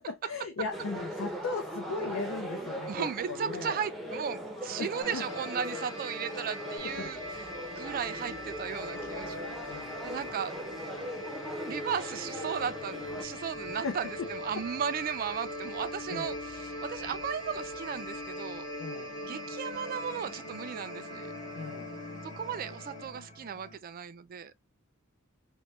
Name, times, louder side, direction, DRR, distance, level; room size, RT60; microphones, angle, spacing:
voice 1, 0.0-3.8 4.8-5.2 7.0-7.1 7.5-7.8 9.7-10.0 13.8-14.3 16.1-16.4 18.8-19.2 21.5-21.9, left 4 dB, 75° left, 0.5 m, -37 dB
sound 1, 0.7-13.2, equal, ahead, 0.6 m, -40 dB
voice 2, 2.9-10.5 11.7-18.7 19.2-21.3 22.4-24.5, right 7 dB, 45° right, 0.3 m, -36 dB
sound 2, 5.0-23.1, left 1 dB, 20° left, 1.3 m, -41 dB
sound 3, 6.8-23.8, equal, 35° left, 0.9 m, -52 dB
3.0 x 2.1 x 3.1 m
head